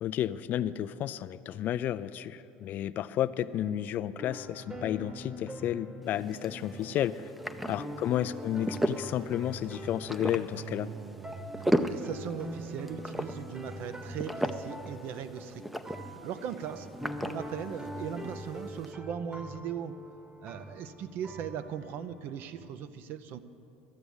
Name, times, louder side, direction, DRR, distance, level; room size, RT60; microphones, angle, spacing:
voice 1, 0.0-7.3 7.7-10.9, left 11 dB, 50° left, 15 dB, 0.3 m, -32 dB
sound 1, 4.2-22.7, equal, 20° right, 1.2 m, -44 dB
sound 2, 6.0-18.9, equal, 5° right, 0.6 m, -37 dB
voice 2, 10.5-15.6 15.9-16.9 17.2-19.9 20.4-23.4, right 8 dB, 60° right, 11 dB, 0.6 m, -39 dB
12.5 x 7.0 x 7.9 m, 2.7 s
hypercardioid pair, 85°, 4 cm